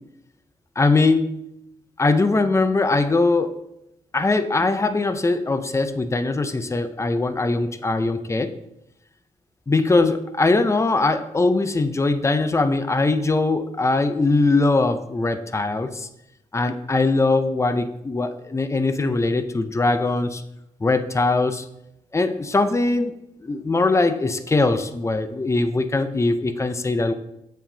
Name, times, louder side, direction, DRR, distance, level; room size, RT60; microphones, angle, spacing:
voice 1, 0.8-1.3 2.0-3.5 4.1-8.5 9.7-16.1 16.5-20.4 20.8-21.6 22.1-23.1 23.4-27.1, left 3 dB, 20° left, 9 dB, 0.5 m, -21 dB
7.3 x 7.2 x 2.7 m, 0.84 s
wide cardioid pair, 115°, 14 cm